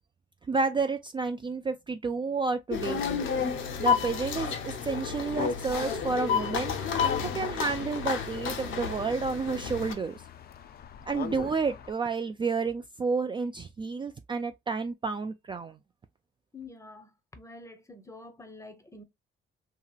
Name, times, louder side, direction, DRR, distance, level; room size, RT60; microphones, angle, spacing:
voice 1, 0.5-3.1 3.8-4.5 4.8-7.1 7.3-10.2 11.1-15.8, right 4 dB, 25° right, 0.3 m, -30 dB
sound 1, 2.7-9.9, left 6 dB, 80° left, 0.7 m, -31 dB
sound 2, 5.1-11.9, left 7 dB, 50° left, 0.5 m, -41 dB
voice 2, 16.5-19.0, left 3 dB, 15° left, 0.7 m, -47 dB
2.8 x 2.8 x 2.3 m
cardioid pair, 90°, 20 cm